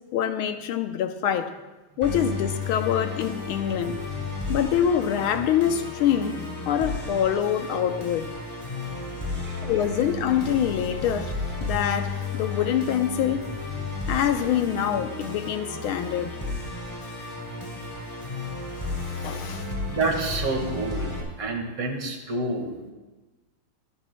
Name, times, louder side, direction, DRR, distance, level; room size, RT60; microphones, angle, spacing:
voice 1, 0.1-1.6 2.0-4.0 4.5-6.3 6.7-8.3 9.6-13.5 14.1-16.3 18.7-19.7, left 9 dB, 75° left, 1.6 m, -25 dB
Musical instrument, 2.0-21.2, left 3 dB, 10° left, 3.0 m, -33 dB
voice 2, 8.8-9.8 19.9-22.9, right 2 dB, 85° right, 2.8 m, -29 dB
24.0 x 11.5 x 2.2 m
omnidirectional pair, 2.4 m